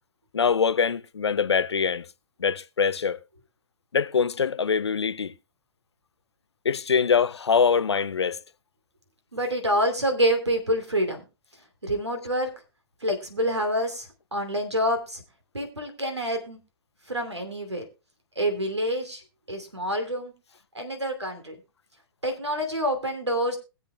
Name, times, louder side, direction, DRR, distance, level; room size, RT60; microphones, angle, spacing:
voice 1, 0.3-2.0 2.4-3.2 3.9-5.3 6.6-8.4, left 6 dB, 75° left, 0.6 m, -23 dB
voice 2, 9.3-11.2 11.8-12.5 13.0-15.2 15.5-16.6 17.1-17.8 18.4-19.2 19.5-20.3 20.7-21.6 22.2-23.6, equal, 85° right, 2.7 m, -27 dB
21.0 x 7.7 x 2.2 m
figure-of-eight pair, 120°, 14 cm